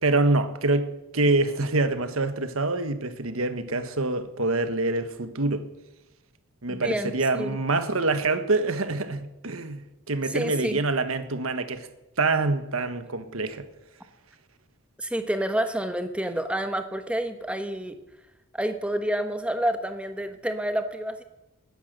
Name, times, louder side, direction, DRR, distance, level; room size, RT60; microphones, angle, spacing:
voice 1, 0.0-5.7 6.6-9.8 10.1-11.9 12.2-13.6, right 2 dB, 75° right, 1.4 m, -25 dB
voice 2, 6.7-7.6 10.3-10.8 15.0-18.0 18.5-21.2, right 1 dB, 5° right, 1.2 m, -29 dB
20.0 x 10.5 x 6.7 m
head